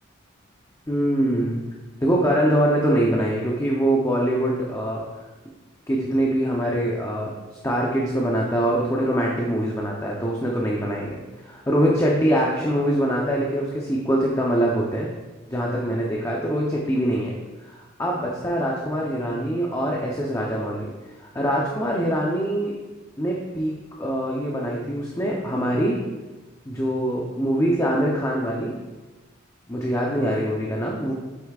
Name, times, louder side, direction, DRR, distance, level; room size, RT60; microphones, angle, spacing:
voice 1, 0.9-1.6 2.0-5.0 5.9-7.3 7.6-15.1 15.5-17.4 17.6-20.9 21.2-22.8 23.2-26.0 26.7-28.8 29.7-31.1, equal, 15° left, -2 dB, 0.7 m, -23 dB
8.2 x 8.1 x 2.4 m, 1.2 s
head